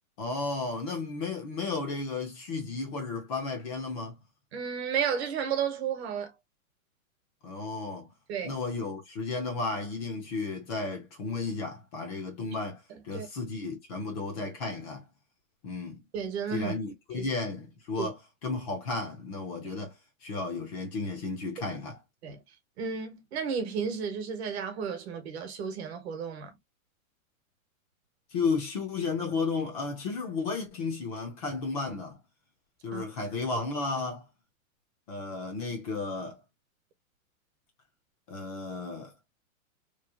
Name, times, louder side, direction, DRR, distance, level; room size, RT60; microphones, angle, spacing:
voice 1, 0.2-4.1 7.4-8.1 8.4-15.1 15.6-16.0 16.5-18.2 18.4-19.9 20.2-22.0 28.3-32.2 32.8-34.2 35.1-36.4 38.3-39.1, left 3 dB, 25° left, 0.6 m, -33 dB
voice 2, 4.5-6.3 8.3-8.6 12.9-13.3 16.1-16.7 17.1-17.3 18.0-18.1 22.2-22.4 22.8-26.5 32.9-33.0, right 7 dB, 50° right, 1.0 m, -33 dB
3.1 x 2.3 x 2.3 m
hypercardioid pair, 150°, 42 cm